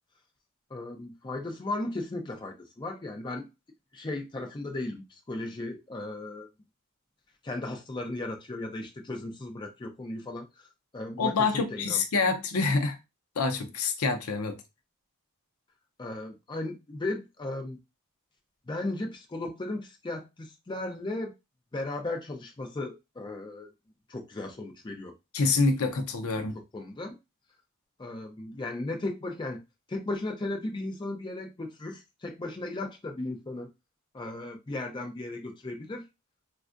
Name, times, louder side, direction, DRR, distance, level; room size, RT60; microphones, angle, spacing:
voice 1, 0.7-3.5 3.9-6.5 7.4-10.5 10.9-12.0 16.0-17.8 18.7-21.3 21.7-23.7 24.1-25.1 26.7-27.2 28.0-29.6 29.9-33.7 34.1-36.0, left 2 dB, 20° left, 0.4 m, -36 dB
voice 2, 11.2-13.0 13.4-14.6 25.3-26.6, left 4 dB, 70° left, 0.6 m, -26 dB
3.5 x 2.2 x 2.5 m
head